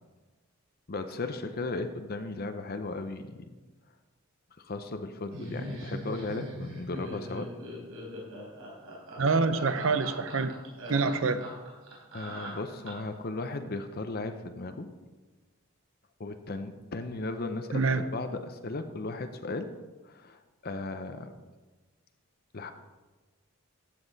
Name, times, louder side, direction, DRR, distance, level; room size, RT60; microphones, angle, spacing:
voice 1, 0.9-3.4 4.6-7.5 12.1-14.9 16.2-19.7 20.0-21.3 22.5-22.7, left 2 dB, 45° left, 8 dB, 0.6 m, -36 dB
Laughter, 5.3-13.2, equal, 90° right, 3.9 m, -41 dB
voice 2, 9.2-10.6 10.9-11.5 17.7-18.0, right 4 dB, 65° right, 12 dB, 0.7 m, -26 dB
14.0 x 7.7 x 4.0 m, 1.2 s
head